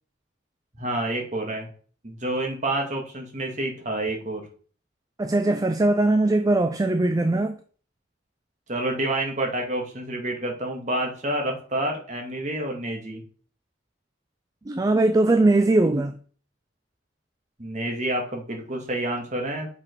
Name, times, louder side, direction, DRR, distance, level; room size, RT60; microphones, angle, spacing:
voice 1, 0.8-1.7 2.0-4.4 8.7-13.2 17.6-19.7, right 1 dB, 40° right, 1.8 m, -28 dB
voice 2, 5.2-7.6 14.7-16.2, right 2 dB, 20° right, 0.3 m, -20 dB
6.0 x 4.8 x 4.5 m
head